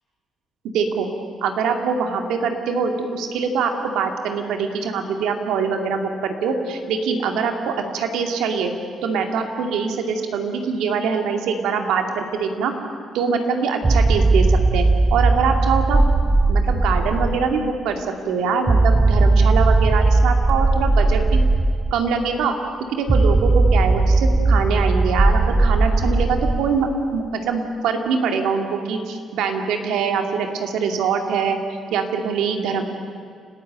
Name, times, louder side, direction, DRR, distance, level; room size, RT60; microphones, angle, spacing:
voice 1, 0.6-1.1 1.4-8.7 9.0-12.7 13.1-21.4 21.9-22.6 22.9-31.6 31.9-32.8, right 5 dB, 90° right, 4 dB, 2.4 m, -23 dB
sound 1, 13.8-17.5 18.7-21.9 23.1-26.8, right 2 dB, 25° right, 1.1 m, -17 dB
29.5 x 13.5 x 8.9 m, 2.3 s
cardioid pair, 90°, 0 cm